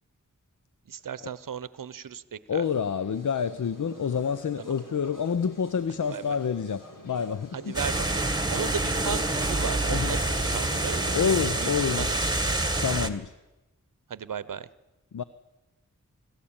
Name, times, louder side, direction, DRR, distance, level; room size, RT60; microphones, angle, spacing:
voice 1, 0.9-2.6 4.6-4.7 6.1-6.2 7.5-11.3 11.6-11.7 12.0-12.4 14.1-14.7, right 7 dB, 85° right, 17 dB, 0.8 m, -36 dB
sound 1, 2.5-11.7, left 1 dB, 85° left, 3.8 m, -46 dB
voice 2, 2.5-7.7 9.9-10.2 11.1-12.1 12.8-13.3 15.1-15.2, left 6 dB, 70° left, 15 dB, 0.7 m, -28 dB
sound 2, 7.7-13.1, right 2 dB, 15° right, 1.7 m, -27 dB
25.5 x 13.5 x 8.8 m, 1.1 s
wide cardioid pair, 65°, 32 cm